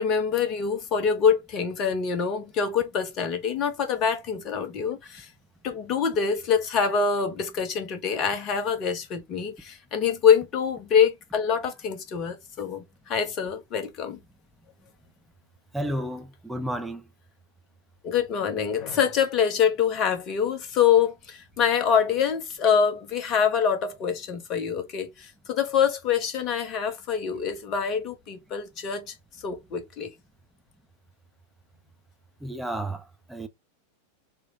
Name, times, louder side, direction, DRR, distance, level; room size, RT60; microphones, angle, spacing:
voice 1, 0.0-5.3 5.6-14.2 18.0-29.1 29.4-30.1, left 7 dB, 35° left, 1.2 m, -25 dB
voice 2, 15.7-17.0 32.4-33.0 33.3-33.5, right 1 dB, 5° right, 0.8 m, -31 dB
3.5 x 3.2 x 3.8 m
figure-of-eight pair, 90°, 0 cm